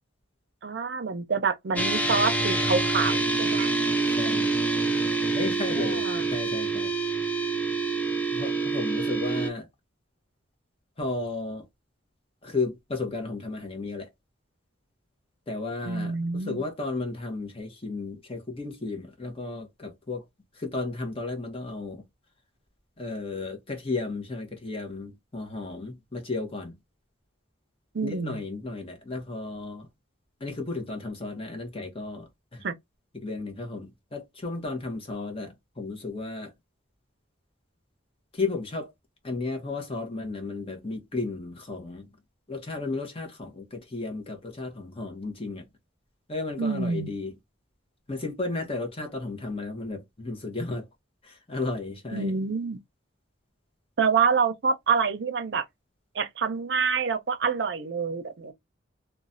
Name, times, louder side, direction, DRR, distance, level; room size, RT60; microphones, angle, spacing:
voice 1, 0.6-3.7 5.7-6.3 15.9-16.6 27.9-28.4 32.6-32.7 46.6-47.1 52.1-52.8 54.0-55.6 56.1-58.5, right 5 dB, 60° right, 0.5 m, -27 dB
sound 1, 1.8-9.5, right 3 dB, 10° left, 0.3 m, -26 dB
voice 2, 4.0-4.6 5.3-6.0 6.3-6.9 8.3-9.7 11.0-11.7 12.4-14.1 15.5-20.2 20.5-22.0 23.0-26.8 28.0-29.9 30.4-32.6 33.1-36.5 38.3-38.9 39.2-42.1 42.5-45.6 46.3-47.4 48.1-50.9 51.2-52.3, left 3 dB, 30° left, 0.7 m, -34 dB
3.1 x 2.1 x 2.5 m
head